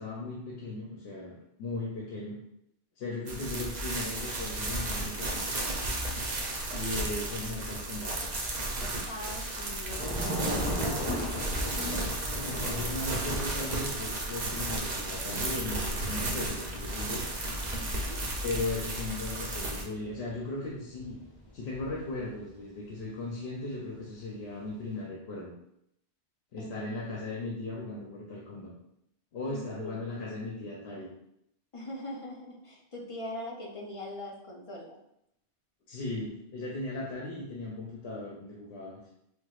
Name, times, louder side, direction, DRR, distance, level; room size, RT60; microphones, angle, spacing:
voice 1, 0.0-1.3 1.6-2.4 3.0-5.5 6.7-8.1 12.4-17.3 18.4-21.2 21.5-25.5 26.5-28.7 29.3-31.1 35.9-39.0, left 2 dB, 75° left, -3 dB, 0.9 m, -37 dB
voice 2, 3.1-3.4 9.0-11.2 11.6-12.2 17.7-18.2 26.6-27.0 29.4-30.0 31.7-35.0, left 1 dB, 45° left, -2 dB, 0.4 m, -42 dB
sound 1, 3.3-19.8, right 2 dB, 50° right, 0.6 m, -34 dB
Thunder / Rain, 10.0-22.5, equal, 25° left, 1.5 m, -40 dB
4.5 x 2.0 x 2.3 m, 0.77 s
omnidirectional pair, 1.1 m